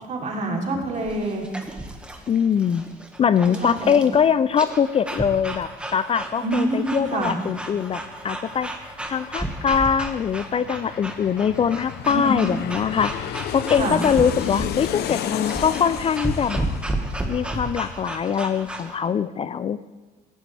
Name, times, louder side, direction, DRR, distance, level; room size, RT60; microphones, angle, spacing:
voice 1, 0.1-1.4 3.6-4.0 6.4-7.4 12.0-12.4 13.8-14.0, right 2 dB, 45° right, 0 dB, 3.4 m, -26 dB
sound 1, 1.0-19.0, right 1 dB, 5° right, 1.6 m, -33 dB
voice 2, 2.3-2.8 3.2-8.7 9.1-16.7 17.3-19.8, left 7 dB, 35° left, 15 dB, 0.4 m, -22 dB
Aircraft, 6.7-6.8 7.1-18.4 18.7-18.8, left 10 dB, 75° left, 0.8 m, -33 dB
19.0 x 15.5 x 3.4 m, 1.3 s
cardioid pair, 110°, 17 cm